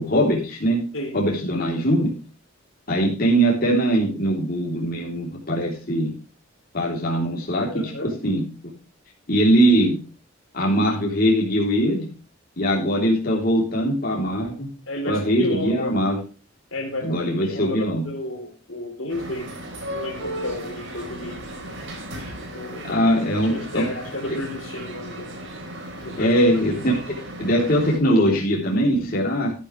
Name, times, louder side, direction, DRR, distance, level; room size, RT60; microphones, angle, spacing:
voice 1, 0.0-0.8 1.1-2.1 2.9-6.1 6.7-8.5 9.3-10.0 10.5-12.1 12.6-14.7 15.1-16.2 17.0-18.1 22.8-23.8 26.2-26.9 27.4-29.5, equal, 45° left, -2 dB, 3.4 m, -21 dB
voice 2, 7.7-8.1 14.9-15.9 16.7-19.5 19.9-21.4 22.5-23.0 23.4-25.3 26.0-26.3, left 1 dB, 65° left, 4 dB, 3.8 m, -32 dB
sound 1, 19.1-28.0, right 1 dB, 60° right, 4.2 m, -36 dB
12.0 x 11.5 x 3.2 m, 0.37 s
head